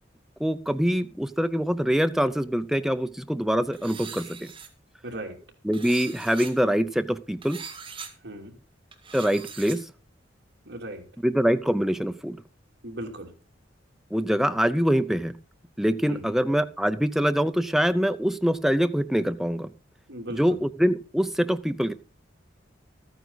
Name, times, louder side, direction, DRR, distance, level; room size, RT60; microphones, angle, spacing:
voice 1, 0.4-4.5 5.6-7.6 9.1-9.9 11.2-12.4 14.1-15.3 15.8-19.7 20.3-21.9, equal, ahead, 10 dB, 0.6 m, -24 dB
sound 1, 3.7-4.7 5.7-6.5 7.4-8.1 8.9-9.8, right 6 dB, 30° right, 2.0 m, -41 dB
voice 2, 5.0-5.4 8.2-8.5 10.6-11.0 12.8-13.3 16.1-16.3 20.1-20.6, right 1 dB, 65° right, 2 dB, 2.8 m, -37 dB
13.5 x 9.4 x 4.0 m, 0.35 s
head